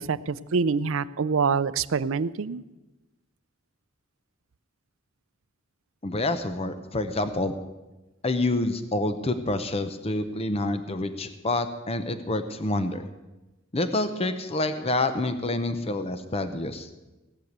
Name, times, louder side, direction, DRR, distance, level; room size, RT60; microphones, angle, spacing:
voice 1, 0.0-2.6, right 5 dB, 70° right, 15 dB, 0.5 m, -26 dB
voice 2, 6.0-7.5 8.2-13.0 13.7-16.9, left 2 dB, 30° left, 9 dB, 0.7 m, -27 dB
17.5 x 6.7 x 8.1 m, 1.1 s
head